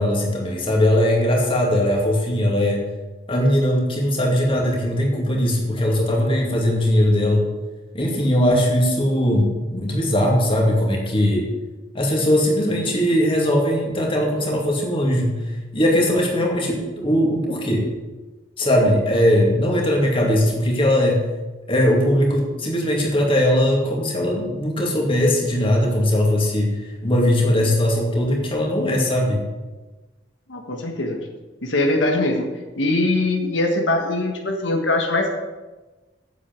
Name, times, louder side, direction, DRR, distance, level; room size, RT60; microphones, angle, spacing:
voice 1, 0.0-2.8 3.3-7.5 7.9-11.4 11.9-15.3 15.7-17.9 18.6-21.2 21.7-26.8 27.0-29.4, equal, 30° left, -1 dB, 2.4 m, -19 dB
voice 2, 30.5-31.3 31.6-32.5 32.8-35.3, left 2 dB, 85° left, 2 dB, 1.5 m, -22 dB
8.3 x 7.6 x 7.7 m, 1.2 s
head